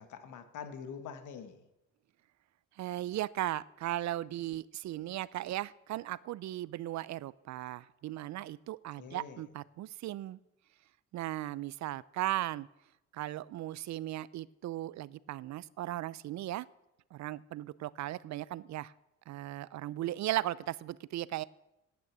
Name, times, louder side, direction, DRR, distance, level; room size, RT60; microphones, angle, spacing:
voice 1, 0.0-1.6 9.0-9.4, left 6 dB, 80° left, 9 dB, 1.5 m, -45 dB
voice 2, 2.8-10.4 11.1-12.7 13.1-16.7 17.1-18.9 19.3-21.4, right 14 dB, 65° right, 20 dB, 0.5 m, -37 dB
9.4 x 9.2 x 8.5 m, 0.94 s
cardioid pair, 90°, 30 cm